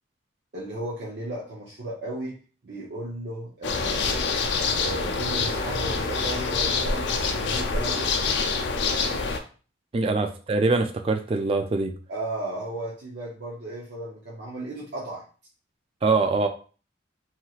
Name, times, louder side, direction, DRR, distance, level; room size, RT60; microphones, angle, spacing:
voice 1, 0.5-2.4 2.6-4.3 4.8-8.1 10.0-10.1 12.1-15.2, right 1 dB, 55° right, -5 dB, 0.7 m, -35 dB
sound 1, 3.6-9.4, left 4 dB, 60° left, 0.4 m, -26 dB
voice 2, 9.9-11.9 16.0-16.5, right 3 dB, 30° right, 5 dB, 0.3 m, -23 dB
3.0 x 2.8 x 2.3 m, 0.37 s
head